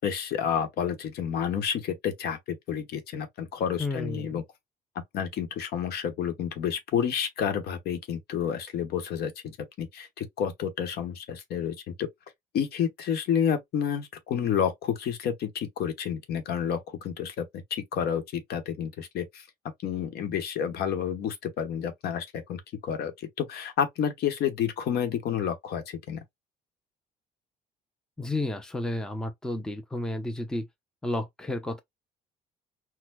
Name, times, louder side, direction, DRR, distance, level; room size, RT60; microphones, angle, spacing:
voice 1, 0.0-4.4 5.1-12.1 12.5-19.4 19.8-23.1 23.4-26.2, left 8 dB, 70° left, 1.0 m, -30 dB
voice 2, 3.8-4.4 28.2-30.7 31.0-31.8, left 2 dB, 5° left, 0.6 m, -32 dB
4.4 x 2.1 x 2.2 m
cardioid pair, 110°, 17 cm